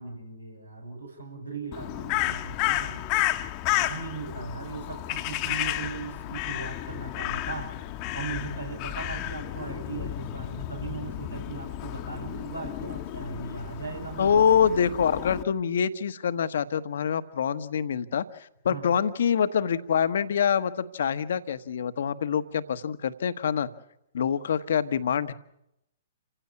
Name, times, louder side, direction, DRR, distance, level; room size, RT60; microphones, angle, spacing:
voice 1, 0.0-3.0 3.7-14.4 18.7-18.9, right 4 dB, 90° right, 2 dB, 7.4 m, -38 dB
Crow, 1.7-15.4, left 15 dB, 35° left, 1.2 m, -32 dB
voice 2, 14.2-18.2 18.6-23.7 24.1-25.3, left 7 dB, 60° left, 13 dB, 1.2 m, -25 dB
28.5 x 16.0 x 8.4 m, 0.84 s
figure-of-eight pair, 115°, 0 cm